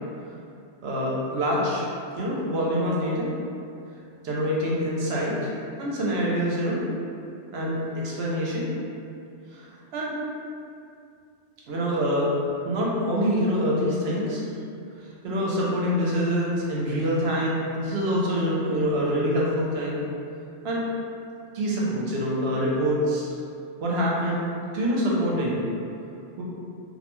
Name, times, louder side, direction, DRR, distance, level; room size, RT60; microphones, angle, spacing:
voice 1, 0.8-1.8 2.2-3.3 4.2-5.5 5.8-6.8 7.5-8.6 9.5-9.7 9.9-10.2 11.7-12.3 12.6-14.5 15.0-20.0 20.6-20.8 21.5-23.3 23.8-24.5 24.7-25.6 26.4-26.5, equal, 65° right, -5 dB, 0.8 m, -25 dB
2.3 x 2.2 x 2.9 m, 2.5 s
omnidirectional pair, 1.2 m